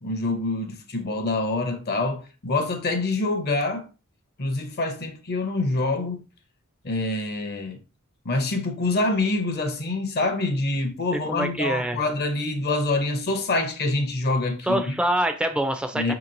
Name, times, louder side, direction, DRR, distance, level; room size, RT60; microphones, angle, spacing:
voice 1, 0.0-3.9 4.4-6.2 6.8-7.8 8.2-14.8 15.9-16.1, left 2 dB, 45° left, 0.6 m, -26 dB
voice 2, 11.3-12.0 14.6-16.1, right 1 dB, 5° right, 0.4 m, -25 dB
5.1 x 2.9 x 2.5 m
head